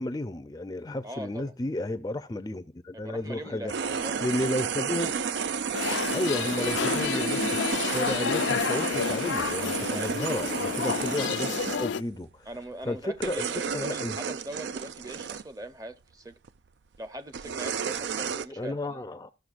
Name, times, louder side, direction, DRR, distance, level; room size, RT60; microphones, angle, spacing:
voice 1, 0.0-3.7 4.2-5.2 6.1-11.5 11.8-12.5 12.8-14.2 18.6-19.3, left 1 dB, 20° left, 0.4 m, -32 dB
voice 2, 1.0-1.5 2.9-4.3 9.7-10.2 12.5-16.3 17.0-19.0, right 1 dB, 20° right, 0.7 m, -41 dB
sound 1, 3.7-11.9 12.5-12.8 13.2-15.4 16.5-16.6 17.3-18.5, right 6 dB, 75° right, 0.4 m, -32 dB
sound 2, 5.7-12.0, left 7 dB, 85° left, 0.4 m, -30 dB
14.5 x 6.6 x 2.5 m
head